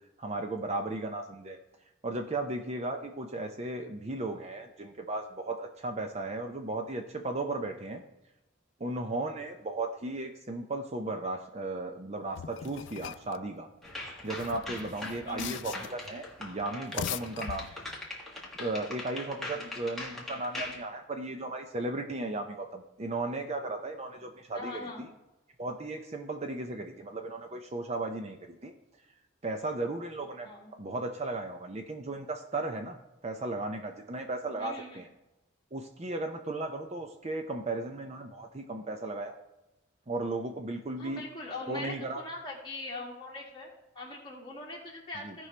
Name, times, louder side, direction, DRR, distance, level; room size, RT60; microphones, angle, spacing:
voice 1, 0.2-1.6 2.0-8.0 8.8-13.7 14.2-17.8 18.6-25.1 25.6-28.4 28.6-28.7 29.4-30.5 30.8-33.0 33.2-35.1 35.7-39.4 40.1-41.2 41.7-42.2 45.2-45.3, right 2 dB, 30° right, 5 dB, 0.6 m, -35 dB
sound 1, 12.3-13.4 14.2-16.1 16.7-18.1, left 9 dB, 60° left, 0.3 m, -40 dB
sound 2, 13.8-20.8, left 2 dB, ahead, 1.6 m, -41 dB
voice 2, 15.2-15.6 19.6-19.9 24.5-25.1 30.4-30.7 34.6-35.0 41.0-45.5, left 2 dB, 25° left, -2 dB, 2.0 m, -42 dB
16.0 x 5.4 x 3.3 m, 0.98 s
head